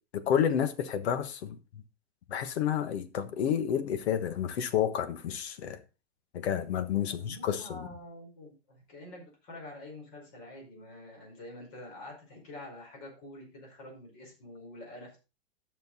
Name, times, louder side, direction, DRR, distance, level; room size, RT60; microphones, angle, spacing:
voice 1, 0.1-1.8 2.3-5.8 6.3-7.9, left 9 dB, 90° left, 1.4 m, -30 dB
voice 2, 7.0-15.2, left 1 dB, 40° left, 5.1 m, -47 dB
11.0 x 6.6 x 4.1 m
supercardioid pair, 175°, 32 cm